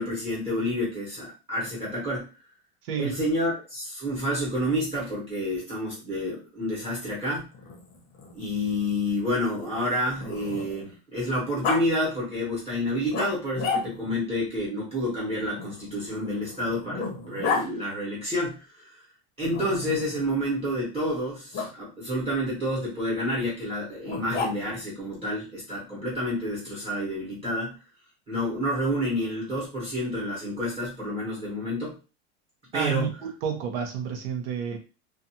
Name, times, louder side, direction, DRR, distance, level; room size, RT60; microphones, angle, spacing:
voice 1, 0.0-2.3 3.0-7.5 8.3-19.0 19.4-27.8 28.3-31.9 32.7-33.1, equal, 20° right, -7 dB, 1.1 m, -29 dB
voice 2, 2.8-3.1 32.7-34.8, right 7 dB, 70° right, 3 dB, 0.8 m, -30 dB
Growling, 7.5-10.9 11.6-11.8 13.1-14.2 15.6-17.7 19.5-20.2 21.5-21.7 24.0-24.9, left 4 dB, 30° left, 0.7 m, -33 dB
2.5 x 2.4 x 2.8 m, 0.32 s
supercardioid pair, 160°, 31 cm